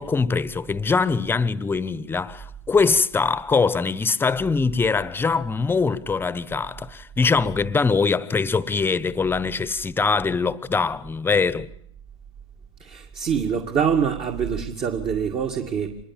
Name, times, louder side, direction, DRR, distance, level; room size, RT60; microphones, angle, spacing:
voice 1, 0.0-11.7, left 4 dB, 15° left, 1.1 m, -22 dB
voice 2, 12.8-16.0, right 7 dB, 35° right, 2.2 m, -25 dB
26.0 x 21.5 x 7.4 m
hypercardioid pair, 105°, 15 cm